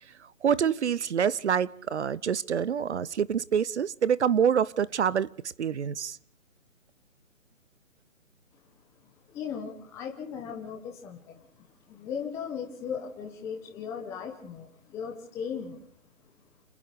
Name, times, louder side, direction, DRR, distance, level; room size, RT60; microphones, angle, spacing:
voice 1, 0.4-5.3 5.6-6.2, right 8 dB, 55° right, 0.8 m, -26 dB
voice 2, 9.0-15.9, left 7 dB, 5° left, 1.1 m, -38 dB
28.0 x 20.0 x 5.1 m
hypercardioid pair, 160°, 40 cm